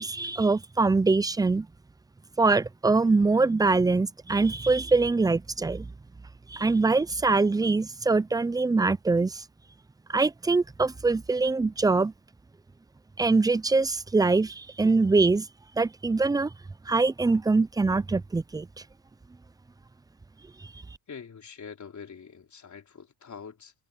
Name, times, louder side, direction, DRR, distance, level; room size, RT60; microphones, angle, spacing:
voice 1, 0.0-1.7 2.4-5.9 6.5-9.4 10.1-12.1 13.2-15.5 15.8-16.5 16.9-18.7, right 3 dB, 10° right, 0.4 m, -23 dB
voice 2, 21.1-23.7, left 6 dB, 40° left, 4.4 m, -44 dB
cardioid pair, 105°, 44 cm